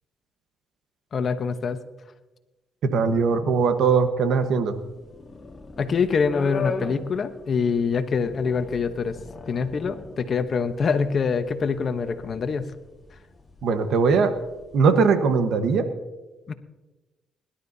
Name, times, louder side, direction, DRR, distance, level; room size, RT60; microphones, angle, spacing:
voice 1, 1.1-1.8 5.8-9.2 9.5-12.7 16.5-16.6, left 5 dB, 50° left, 9 dB, 1.0 m, -25 dB
voice 2, 2.8-4.7 13.6-14.3 14.7-15.9, right 5 dB, 75° right, 9 dB, 1.2 m, -20 dB
sound 1, 4.7-14.9, left 4 dB, 30° left, 1.6 m, -39 dB
22.0 x 12.0 x 2.8 m, 1.1 s
cardioid pair, 90°, 0 cm